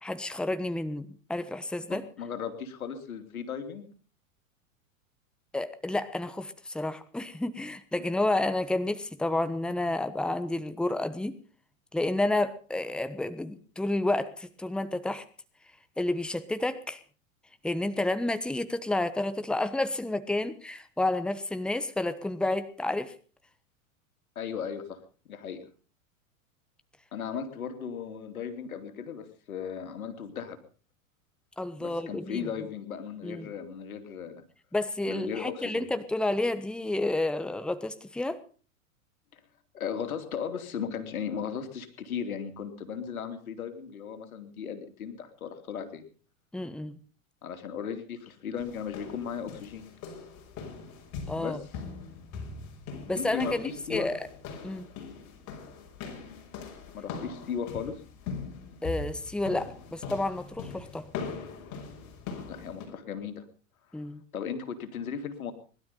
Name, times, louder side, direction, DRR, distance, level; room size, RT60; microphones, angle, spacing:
voice 1, 0.0-2.1 5.5-11.4 11.9-15.2 16.0-17.0 17.6-23.1 31.6-32.5 33.2-33.5 34.7-38.4 46.5-47.0 51.3-51.6 53.1-54.2 54.6-54.9 58.8-61.1 63.9-64.2, left 2 dB, ahead, 11 dB, 1.1 m, -30 dB
voice 2, 1.9-3.9 24.3-25.0 25.3-25.6 27.1-30.6 31.8-34.4 35.1-35.9 39.3-39.4 39.7-46.1 47.4-49.9 51.4-51.7 53.2-54.1 56.9-58.0 62.5-63.4 63.9-64.0 64.3-65.5, left 7 dB, 80° left, 7 dB, 3.0 m, -36 dB
sound 1, 48.6-62.9, left 5 dB, 40° left, 6.2 m, -41 dB
20.5 x 12.5 x 5.4 m, 0.40 s
hypercardioid pair, 105°, 42 cm